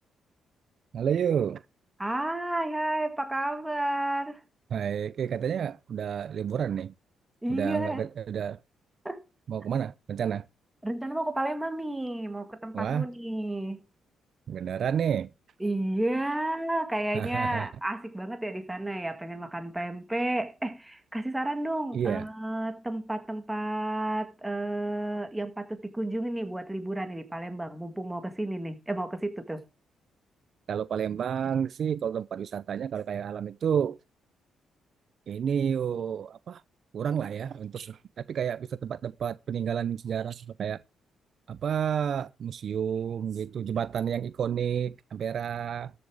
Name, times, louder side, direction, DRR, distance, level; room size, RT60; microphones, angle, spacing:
voice 1, 0.9-1.6 4.7-6.9 7.5-8.6 9.5-10.5 12.7-13.1 14.5-15.3 17.1-17.7 21.9-22.2 30.7-34.0 35.3-36.6 36.9-38.0 38.3-40.8 41.5-45.9, right 8 dB, 55° right, 0.5 m, -30 dB
voice 2, 2.0-4.4 7.4-8.1 9.0-9.2 10.8-13.8 15.6-29.6, right 1 dB, 10° right, 1.9 m, -31 dB
13.5 x 7.0 x 4.8 m
cardioid pair, 115°, 0 cm